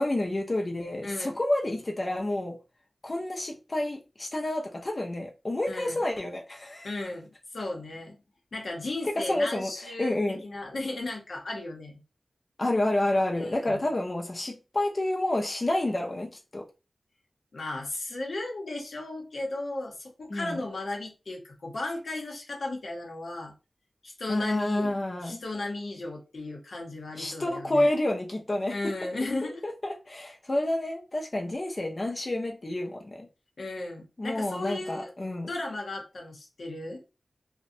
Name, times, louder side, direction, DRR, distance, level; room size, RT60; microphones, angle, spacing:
voice 1, 0.0-2.6 3.0-6.9 9.0-9.7 10.0-10.4 12.6-16.7 20.3-20.6 24.3-25.4 27.2-28.9 29.6-33.3 34.2-35.5, left 1 dB, 40° left, 0.4 m, -29 dB
voice 2, 1.0-1.4 5.7-6.0 6.8-7.3 7.5-8.2 8.5-12.0 13.4-13.9 17.5-23.5 24.0-24.9 25.2-27.9 28.7-29.6 33.6-35.1 35.5-37.0, left 2 dB, 85° left, 0.7 m, -35 dB
2.5 x 2.1 x 2.5 m
wide cardioid pair, 95°, 0 cm